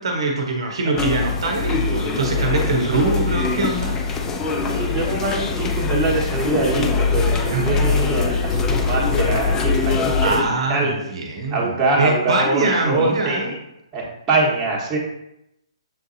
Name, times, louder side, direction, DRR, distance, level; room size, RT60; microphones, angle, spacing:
voice 1, 0.0-4.0 7.5-7.8 10.2-13.5, right 3 dB, 65° right, 2 dB, 0.8 m, -23 dB
sound 1, 1.0-10.4, left 4 dB, 15° left, 0.4 m, -22 dB
voice 2, 2.3-2.8 4.6-10.9 11.5-13.6 13.9-15.0, right 3 dB, 20° right, -4 dB, 1.3 m, -24 dB
6.9 x 2.6 x 2.6 m, 0.83 s
figure-of-eight pair, 135°, 3 cm